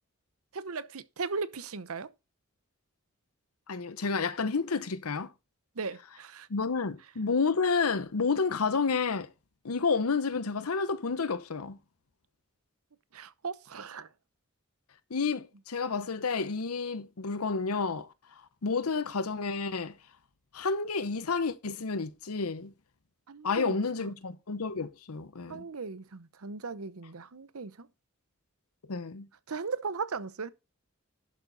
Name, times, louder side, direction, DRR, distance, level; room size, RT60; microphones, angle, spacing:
voice 1, 0.5-2.1 5.7-6.5 13.1-14.1 23.3-24.1 25.5-27.9 29.5-30.5, right 4 dB, 80° right, 0.8 m, -37 dB
voice 2, 3.7-5.3 6.5-9.3 9.6-11.8 15.1-18.1 18.6-19.9 20.5-22.7 23.4-25.6 28.9-29.3, left 4 dB, 85° left, 0.9 m, -30 dB
11.0 x 6.4 x 4.0 m
head